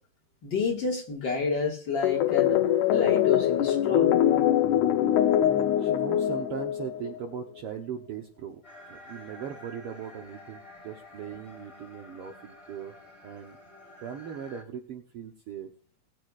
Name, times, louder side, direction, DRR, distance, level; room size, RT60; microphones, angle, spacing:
voice 1, 0.4-2.6 2.9-4.2, left 4 dB, 45° left, 0 dB, 2.3 m, -30 dB
sound 1, 2.0-7.2, left 11 dB, 90° left, 2.1 m, -23 dB
voice 2, 5.4-13.0 13.2-13.6 14.0-15.7, right 8 dB, 65° right, 3 dB, 1.5 m, -39 dB
sound 2, 8.6-14.6, left 1 dB, 10° left, 2.6 m, -49 dB
20.5 x 7.6 x 2.4 m, 0.40 s
omnidirectional pair, 3.4 m